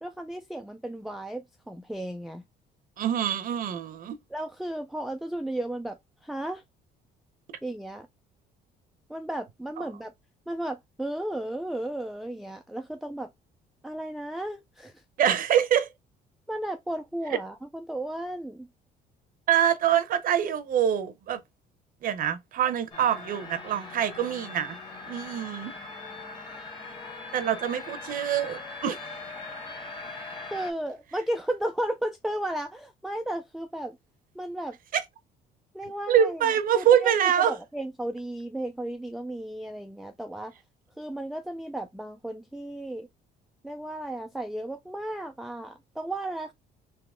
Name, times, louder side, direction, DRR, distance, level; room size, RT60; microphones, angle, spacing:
voice 1, 0.0-2.4 4.3-6.0 6.2-6.6 7.6-8.1 9.1-10.1 10.5-13.3 13.8-14.9 16.5-18.7 30.5-34.0 34.4-34.8 35.7-40.5 41.0-43.1 43.6-46.5, right 1 dB, ahead, 0.3 m, -34 dB
voice 2, 3.0-4.2 9.8-9.9 15.2-15.9 19.5-21.4 22.0-24.8 25.1-25.7 27.3-29.0 34.9-35.0 36.1-37.6, right 9 dB, 55° right, 0.7 m, -25 dB
sound 1, 22.9-30.7, left 3 dB, 30° left, 1.4 m, -41 dB
3.7 x 2.8 x 3.5 m
cardioid pair, 110°, 17 cm